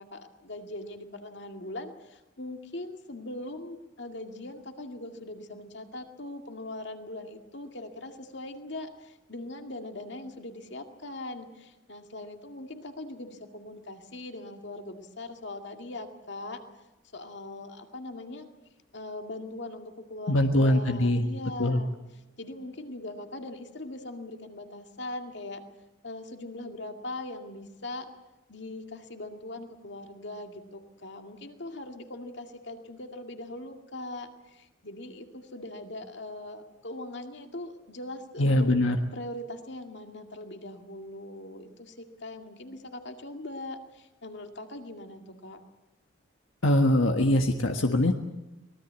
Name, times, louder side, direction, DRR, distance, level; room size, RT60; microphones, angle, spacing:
voice 1, 0.0-16.6 17.1-18.5 18.9-21.9 22.4-25.6 26.0-28.1 28.5-38.7 39.1-45.6, left 2 dB, 60° left, 5 dB, 2.2 m, -41 dB
voice 2, 20.3-21.3 21.6-21.8 38.4-39.0 46.6-48.1, left 1 dB, 85° left, 5 dB, 1.5 m, -22 dB
24.5 x 19.5 x 8.2 m, 0.97 s
head